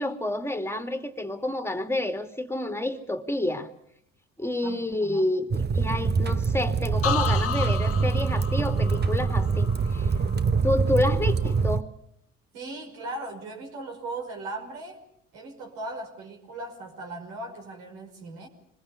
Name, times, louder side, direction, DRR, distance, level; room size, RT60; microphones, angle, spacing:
voice 1, 0.0-3.7 4.4-10.1 10.6-11.9, left 1 dB, 5° left, 8 dB, 2.6 m, -29 dB
voice 2, 4.6-5.3 12.5-15.0 15.3-18.5, right 2 dB, 75° right, 2 dB, 5.6 m, -38 dB
sound 1, 5.5-11.8, right 5 dB, 25° right, 1.0 m, -24 dB
sound 2, 7.0-10.8 11.2-11.7, left 7 dB, 35° left, 1.5 m, -34 dB
26.5 x 21.0 x 7.0 m, 0.72 s
hypercardioid pair, 60°, 37 cm